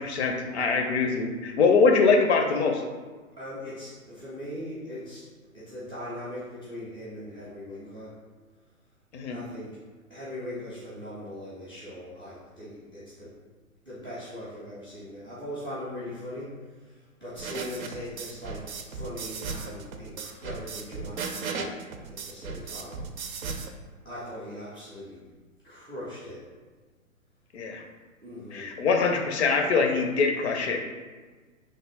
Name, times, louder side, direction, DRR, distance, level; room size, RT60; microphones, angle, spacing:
voice 1, 0.0-2.8 9.1-9.4 27.5-27.8 28.5-30.8, left 4 dB, 55° left, 4 dB, 0.6 m, -23 dB
voice 2, 3.4-5.3 5.5-8.1 9.3-9.7 10.1-13.3 13.8-21.8 22.1-23.0 24.0-25.2 25.6-26.4 28.2-28.7, left 1 dB, 5° right, -11 dB, 0.3 m, -40 dB
sound 1, 17.4-23.7, right 5 dB, 85° right, 0.5 m, -36 dB
3.2 x 2.2 x 3.4 m, 1.4 s
figure-of-eight pair, 120°, 41 cm